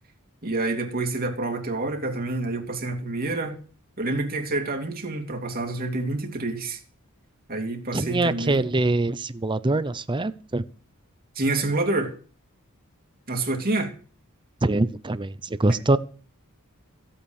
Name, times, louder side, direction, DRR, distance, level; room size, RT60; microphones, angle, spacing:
voice 1, 0.4-3.6 4.0-6.8 7.5-8.6 11.4-12.1 13.3-13.9, right 2 dB, 45° right, 2.7 m, -27 dB
voice 2, 7.9-10.6 14.6-16.0, right 2 dB, 20° right, 0.7 m, -24 dB
15.5 x 8.8 x 6.5 m
head